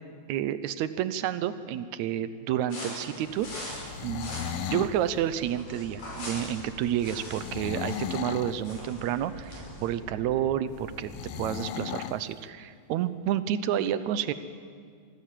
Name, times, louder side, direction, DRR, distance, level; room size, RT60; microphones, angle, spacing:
voice 1, 0.3-3.5 4.0-11.1 11.4-14.3, right 10 dB, 80° right, 13 dB, 2.0 m, -30 dB
sound 1, 2.7-9.9, left 1 dB, 65° left, 7.4 m, -42 dB
Animal, 3.2-11.4, equal, 45° left, 7.6 m, -47 dB
sound 2, 3.7-5.0 7.3-8.6 11.1-12.2, left 10 dB, 85° left, 1.3 m, -35 dB
24.0 x 15.0 x 7.6 m, 2.1 s
omnidirectional pair, 3.4 m